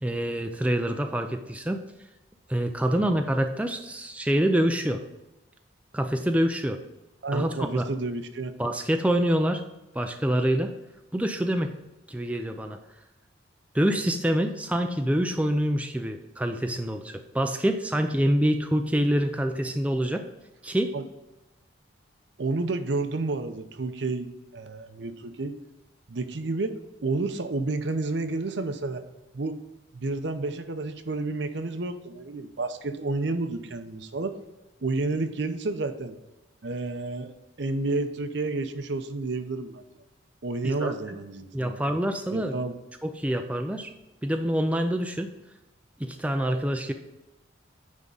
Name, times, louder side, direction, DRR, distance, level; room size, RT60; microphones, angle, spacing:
voice 1, 0.0-1.8 2.5-5.0 5.9-6.8 7.3-7.9 8.6-9.6 9.9-10.7 11.1-11.7 12.1-12.8 13.7-20.2 20.6-21.0 40.6-40.9 41.5-42.6 43.0-43.9 44.2-45.3 46.0-46.9, equal, 5° right, 5 dB, 0.4 m, -26 dB
voice 2, 2.8-3.2 7.2-8.5 20.9-21.1 22.4-25.6 26.1-26.7 27.0-29.0 29.3-29.6 29.9-34.4 34.8-36.2 36.6-39.8 40.4-41.8 42.3-42.7, right 3 dB, 60° right, 9 dB, 0.7 m, -30 dB
9.6 x 3.7 x 5.3 m, 1.0 s
head